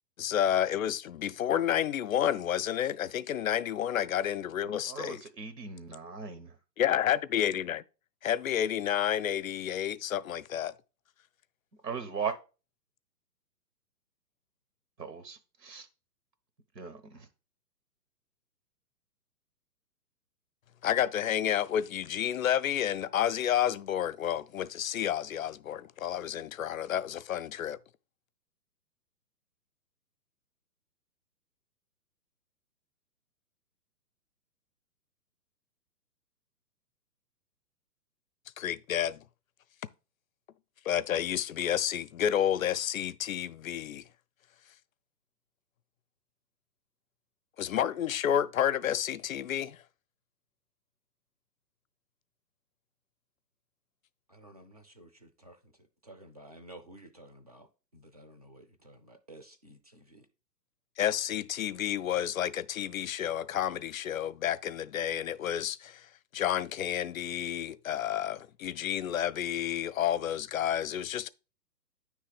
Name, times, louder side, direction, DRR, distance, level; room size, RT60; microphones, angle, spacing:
voice 1, 0.2-5.2 6.8-7.8 8.2-10.7 20.8-27.8 38.6-39.2 40.8-44.0 47.6-49.8 61.0-66.1 66.3-71.3, left 10 dB, 55° left, 0.5 m, -30 dB
voice 2, 4.9-6.5 11.8-12.4 15.0-15.9 16.7-17.3, right 6 dB, 80° right, 1.0 m, -38 dB
voice 3, 54.3-55.6 56.0-60.3, right 1 dB, 25° right, 0.4 m, -53 dB
9.7 x 3.3 x 4.9 m
figure-of-eight pair, 125°, 49 cm